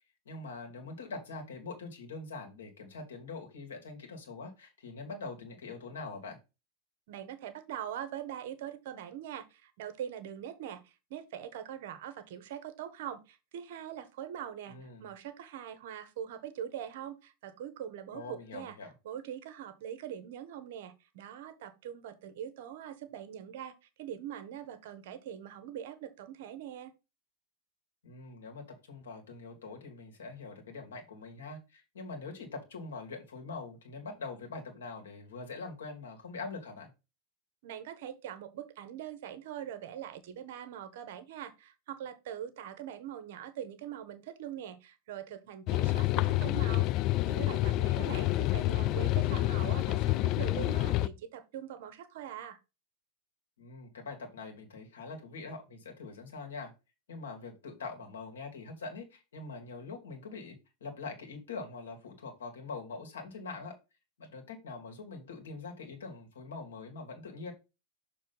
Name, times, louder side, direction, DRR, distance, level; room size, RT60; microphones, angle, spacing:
voice 1, 0.0-6.4 14.7-15.1 18.1-18.9 28.0-36.9 47.9-48.4 53.6-56.7 57.1-63.7 64.2-67.5, left 3 dB, 65° left, 2.0 m, -43 dB
voice 2, 7.1-18.8 19.0-23.7 24.0-26.9 37.6-52.6, right 10 dB, 55° right, 0.9 m, -42 dB
sound 1, 45.7-51.1, left 17 dB, 40° left, 0.3 m, -28 dB
6.6 x 3.3 x 5.4 m
figure-of-eight pair, 90°, 0 cm